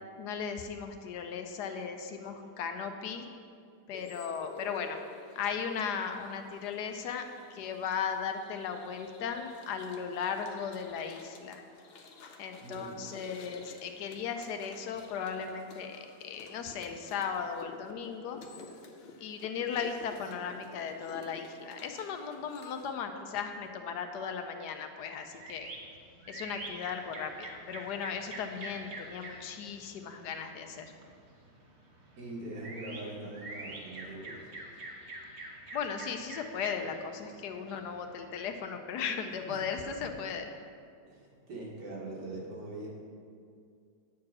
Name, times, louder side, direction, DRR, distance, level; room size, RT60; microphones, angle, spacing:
voice 1, 0.2-3.3 3.9-5.0 5.3-7.3 7.5-11.6 12.4-18.4 19.2-25.7 26.3-30.9 35.7-40.5, left 6 dB, 75° left, 6 dB, 1.2 m, -37 dB
sound 1, 3.9-22.9, left 4 dB, 55° left, 0.7 m, -52 dB
voice 2, 12.6-13.0 32.2-34.6 39.5-39.6 41.1-42.9, right 2 dB, 80° right, -4 dB, 2.3 m, -42 dB
sound 2, 25.3-38.6, right 2 dB, 45° right, 1.1 m, -47 dB
8.5 x 4.7 x 6.2 m, 2.3 s
omnidirectional pair, 1.8 m